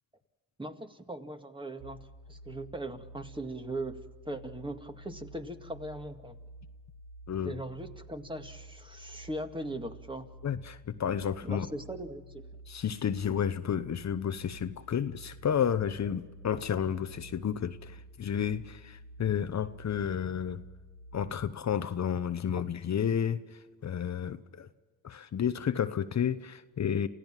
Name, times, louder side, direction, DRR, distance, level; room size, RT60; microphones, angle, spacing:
voice 1, 0.6-2.0 2.3-6.4 7.4-10.3 11.4-12.5, right 1 dB, 15° right, 2.1 m, -39 dB
sound 1, 1.8-21.4, right 1 dB, 65° right, 4.6 m, -50 dB
voice 2, 7.3-7.6 10.4-11.7 12.7-20.6 21.1-24.7 25.0-27.1, left 8 dB, 50° left, 1.0 m, -31 dB
28.0 x 15.5 x 7.4 m
cardioid pair, 70°, 36 cm